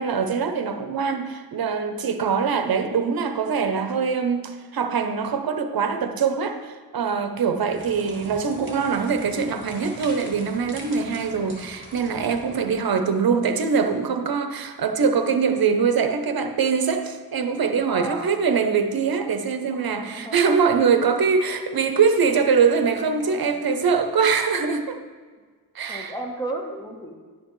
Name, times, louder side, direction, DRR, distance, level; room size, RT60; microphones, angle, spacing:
voice 1, 0.0-25.0 25.7-26.1, right 5 dB, 65° right, 7 dB, 0.7 m, -23 dB
sound 1, 7.7-12.7, right 1 dB, 30° right, 2.3 m, -42 dB
voice 2, 9.0-9.3 12.6-12.9 17.9-18.3 19.7-20.4 23.2-23.7 25.9-27.1, right 1 dB, 10° left, 1 dB, 0.9 m, -35 dB
10.5 x 8.7 x 3.1 m, 1.5 s
wide cardioid pair, 155°, 38 cm